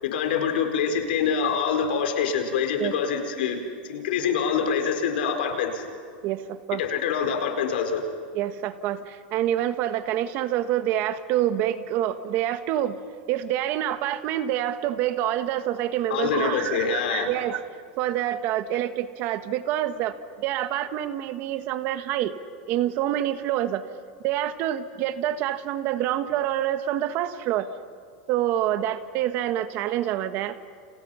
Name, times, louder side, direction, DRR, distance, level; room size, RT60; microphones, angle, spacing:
voice 1, 0.0-5.8 6.8-8.0 16.1-17.3, left 7 dB, 70° left, 5 dB, 4.7 m, -25 dB
voice 2, 6.2-6.8 8.3-13.0 13.3-17.6 18.0-22.4 22.7-23.8 24.2-27.7 28.3-30.6, right 12 dB, 40° right, 10 dB, 1.4 m, -27 dB
30.0 x 30.0 x 5.8 m, 2.2 s
supercardioid pair, 165°, 5 cm